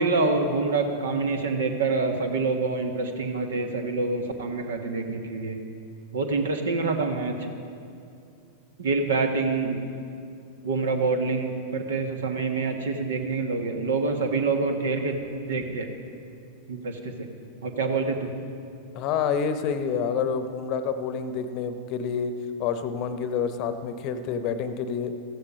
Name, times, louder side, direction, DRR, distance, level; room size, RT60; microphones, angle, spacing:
voice 1, 0.0-5.6 6.1-7.5 8.8-9.8 10.6-15.2 15.5-15.9 16.7-17.3 17.6-18.3, right 3 dB, 65° right, 5 dB, 1.5 m, -26 dB
voice 2, 18.9-22.3 22.6-25.1, left 6 dB, 40° left, 10 dB, 0.9 m, -28 dB
15.0 x 14.5 x 5.1 m, 2.5 s
figure-of-eight pair, 90°, 0 cm